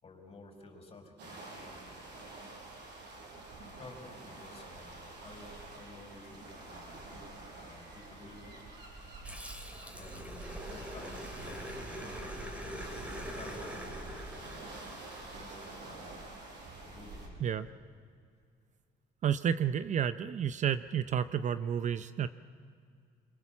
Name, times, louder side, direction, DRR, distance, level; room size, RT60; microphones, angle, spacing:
voice 1, 0.0-2.4 3.8-7.3 7.6-8.6 10.0-11.8 12.7-14.9 15.3-16.3 16.8-17.7, left 2 dB, 35° left, 2 dB, 5.4 m, -53 dB
sound 1, 1.2-17.3, right 2 dB, 80° right, 6.1 m, -47 dB
Growling, 9.2-15.9, equal, 5° right, 3.1 m, -45 dB
voice 2, 19.2-22.3, right 8 dB, 45° right, 12 dB, 0.7 m, -31 dB
25.0 x 23.0 x 7.2 m, 2.2 s
cardioid pair, 110°, 17 cm